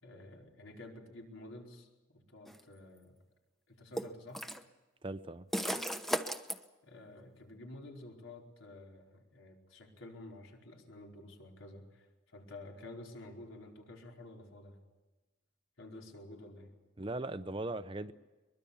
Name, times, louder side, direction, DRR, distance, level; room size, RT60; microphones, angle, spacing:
voice 1, 0.0-3.2 3.7-4.4 6.8-14.8 15.8-16.7, left 2 dB, 75° left, 1 dB, 4.6 m, -51 dB
sound 1, 2.5-2.6 4.0-4.6 5.5-6.6, equal, ahead, 0.9 m, -35 dB
voice 2, 5.0-5.5 17.0-18.1, right 2 dB, 25° right, 12 dB, 0.7 m, -39 dB
23.5 x 22.0 x 7.1 m, 1.2 s
head